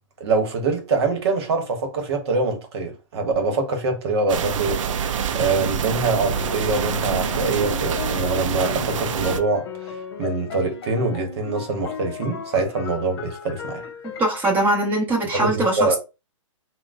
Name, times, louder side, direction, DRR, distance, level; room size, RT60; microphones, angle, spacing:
voice 1, 0.2-9.9 10.2-13.8 15.4-16.0, right 3 dB, 50° right, 1.1 m, -24 dB
sound 1, 4.3-9.4, right 8 dB, 70° right, 0.5 m, -26 dB
sound 2, 6.1-14.7, left 7 dB, 50° left, 0.5 m, -35 dB
voice 2, 14.0-16.0, right 2 dB, 10° right, 1.0 m, -22 dB
3.6 x 2.2 x 2.5 m
hypercardioid pair, 150°, 17 cm